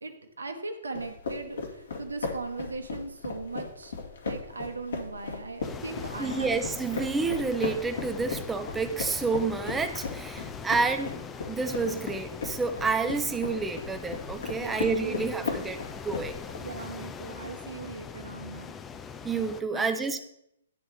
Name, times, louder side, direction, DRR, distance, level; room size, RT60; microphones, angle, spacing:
voice 1, 0.0-4.0 4.2-6.6 14.5-15.5 16.6-18.7 19.7-20.2, right 3 dB, 85° right, 6 dB, 1.3 m, -39 dB
sound 1, 0.9-16.6, left 4 dB, 70° left, 2.2 m, -37 dB
sound 2, 5.6-19.6, left 6 dB, 15° left, 0.6 m, -42 dB
voice 2, 6.2-16.4 19.2-20.2, right 4 dB, 10° right, 8 dB, 0.9 m, -29 dB
11.0 x 3.8 x 6.7 m, 0.75 s
hypercardioid pair, 125°, 0 cm